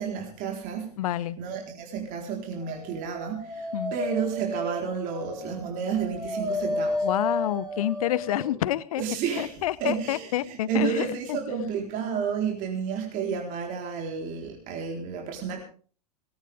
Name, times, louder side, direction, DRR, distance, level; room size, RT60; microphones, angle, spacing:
voice 1, 0.0-1.0 1.4-7.1 9.0-15.6, right 6 dB, 40° right, 1 dB, 4.3 m, -31 dB
voice 2, 1.0-1.4 3.7-3.9 7.0-9.0 9.4-11.4, left 13 dB, 60° left, 19 dB, 1.1 m, -28 dB
Dog, 3.0-8.6, left 1 dB, 15° right, 4.0 m, -32 dB
20.0 x 17.0 x 3.6 m, 0.42 s
figure-of-eight pair, 90°, 20 cm